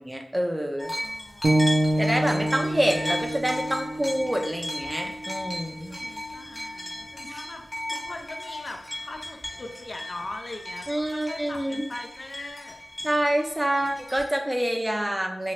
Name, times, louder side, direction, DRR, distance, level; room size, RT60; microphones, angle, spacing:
voice 1, 0.0-0.9 2.0-5.9 7.3-7.4 10.9-11.8 13.0-15.5, right 1 dB, 15° right, 3 dB, 0.5 m, -27 dB
sound 1, 0.8-14.2, left 1 dB, 30° left, 0.9 m, -36 dB
voice 2, 1.0-2.5 5.5-12.8 13.0-13.1, left 2 dB, 60° left, 3 dB, 0.4 m, -41 dB
sound 2, 1.4-5.6, right 1 dB, 65° right, 0.4 m, -27 dB
2.9 x 2.4 x 3.1 m, 0.84 s
cardioid pair, 50°, 0 cm